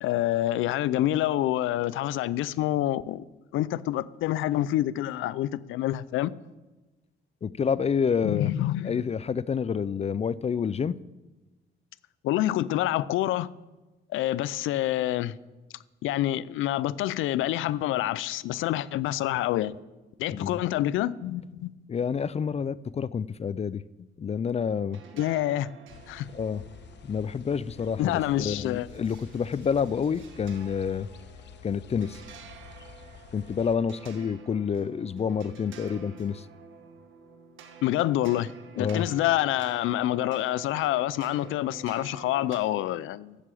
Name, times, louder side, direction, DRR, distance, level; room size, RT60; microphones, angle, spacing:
voice 1, 0.0-3.2 3.5-6.3 8.2-9.0 12.2-13.5 14.1-15.4 16.0-19.7 20.2-21.7 25.2-25.7 26.1-26.3 28.0-28.9 37.8-38.5 38.8-43.4, left 14 dB, 85° left, 0.5 m, -27 dB
voice 2, 7.4-8.5 8.8-11.0 20.3-20.6 21.9-23.8 24.2-25.2 26.3-26.6 27.0-31.1 31.6-32.2 33.3-36.5 38.8-39.1, left 6 dB, 35° left, 0.4 m, -28 dB
sound 1, 24.9-42.6, right 6 dB, 75° right, 1.7 m, -49 dB
sound 2, 25.9-33.8, left 7 dB, 65° left, 0.9 m, -49 dB
12.5 x 7.5 x 8.4 m
cardioid pair, 90°, 20 cm